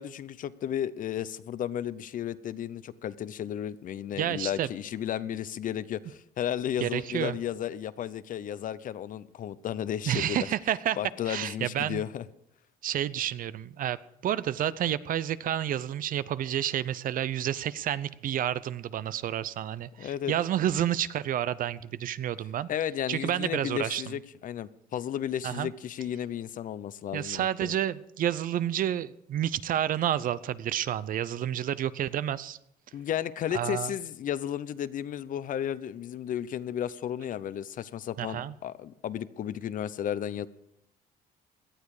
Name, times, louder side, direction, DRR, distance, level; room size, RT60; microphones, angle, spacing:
voice 1, 0.0-10.5 11.0-12.2 20.0-20.3 22.7-27.7 32.9-40.5, left 10 dB, 50° left, 16 dB, 0.7 m, -33 dB
voice 2, 4.2-4.7 6.8-7.4 10.1-11.0 11.3-12.0 12.8-22.7 23.1-24.0 25.4-25.7 27.1-32.6 33.5-33.9 38.2-38.5, right 11 dB, 55° right, 17 dB, 0.6 m, -30 dB
18.0 x 12.0 x 4.9 m, 0.77 s
cardioid pair, 110°, 17 cm